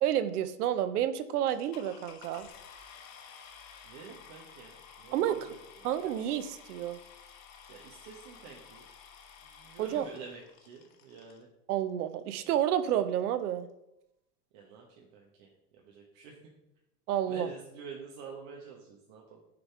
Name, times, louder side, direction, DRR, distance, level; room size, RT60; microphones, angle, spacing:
voice 1, 0.0-2.5 5.1-5.5 5.8-7.0 9.8-10.1 11.7-13.7 17.1-17.5, right 10 dB, 70° right, 12 dB, 0.7 m, -30 dB
sound 1, 1.5-11.4 12.2-12.3 12.8-12.9 13.1-13.4, left 7 dB, 45° left, 1.2 m, -53 dB
voice 2, 3.8-5.9 7.7-8.8 9.4-11.5 14.5-16.4 17.3-19.4, right 5 dB, 50° right, -1 dB, 1.3 m, -49 dB
6.7 x 4.0 x 4.7 m, 0.86 s
hypercardioid pair, 115°, 47 cm